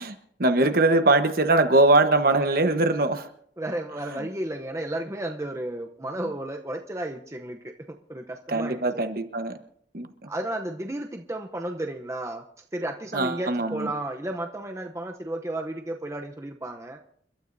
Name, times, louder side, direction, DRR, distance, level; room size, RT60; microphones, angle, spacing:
voice 1, 0.0-3.3 4.1-4.3 8.5-9.5 9.9-10.3 13.1-13.9, right 2 dB, 55° right, 8 dB, 1.2 m, -22 dB
voice 2, 3.6-9.1 10.3-12.4 12.7-17.0, right 1 dB, 15° right, 3 dB, 0.7 m, -33 dB
29.0 x 12.5 x 2.7 m, 0.64 s
head